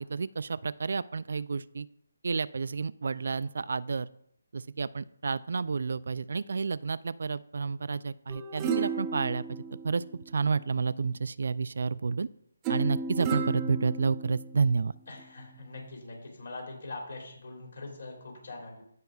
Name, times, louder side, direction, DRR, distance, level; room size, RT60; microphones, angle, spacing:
voice 1, 0.0-1.9 2.2-4.1 4.5-12.3 12.7-14.9, right 4 dB, 60° right, 17 dB, 0.3 m, -30 dB
sound 1, 8.3-10.6 12.6-14.7 15.2-15.3, right 4 dB, 15° right, 0.8 m, -34 dB
voice 2, 15.1-18.8, left 2 dB, 60° left, 0 dB, 3.2 m, -42 dB
16.0 x 5.4 x 2.4 m, 0.71 s
hypercardioid pair, 165°, 0 cm